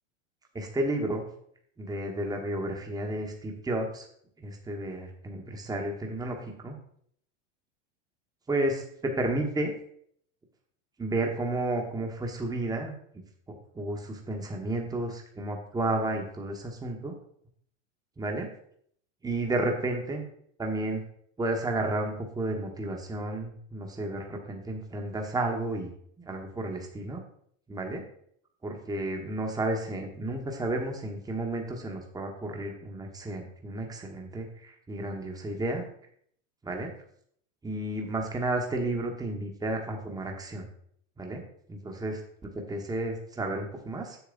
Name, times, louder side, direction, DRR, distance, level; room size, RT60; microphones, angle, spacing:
voice 1, 0.5-1.2 1.8-4.1 4.4-6.8 8.5-9.7 11.0-12.9 13.5-17.1 18.2-18.5 19.2-20.2 20.6-21.0 21.4-25.9 26.3-27.2 27.7-28.0 28.6-35.8 36.6-36.9 37.6-40.7 41.2-41.4 41.7-42.2 42.7-44.2, right 2 dB, 10° right, 2 dB, 1.3 m, -32 dB
7.2 x 6.9 x 3.9 m, 0.65 s
hypercardioid pair, 115°, 39 cm